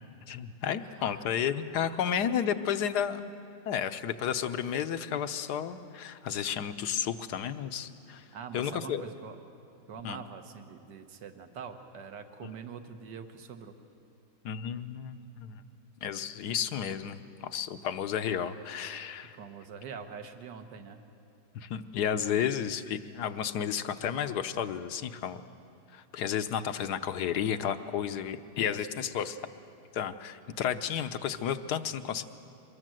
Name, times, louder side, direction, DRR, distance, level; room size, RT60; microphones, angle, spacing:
voice 1, 0.3-3.2 3.7-8.2 8.5-9.0 10.0-10.2 12.4-12.5 14.4-15.6 16.0-19.4 21.5-25.4 25.9-29.4 29.9-32.2, left 8 dB, 70° left, 11 dB, 1.3 m, -32 dB
voice 2, 0.8-1.2 8.3-9.4 9.9-13.8 19.3-21.0, right 6 dB, 75° right, 7 dB, 1.8 m, -44 dB
23.5 x 21.0 x 7.7 m, 2.6 s
omnidirectional pair, 1.9 m